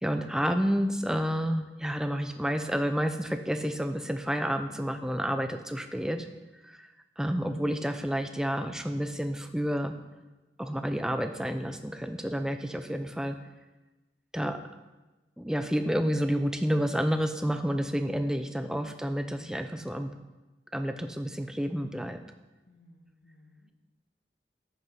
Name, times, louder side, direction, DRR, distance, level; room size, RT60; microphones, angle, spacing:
voice 1, 0.0-6.3 6.6-6.9 7.2-10.0 10.6-13.4 14.3-14.6 15.4-20.1 20.7-22.2, equal, 5° right, 8 dB, 0.5 m, -30 dB
voice 2, 22.7-23.7, left 1 dB, 70° left, 1 dB, 1.7 m, -58 dB
9.1 x 6.5 x 5.7 m, 1.1 s
head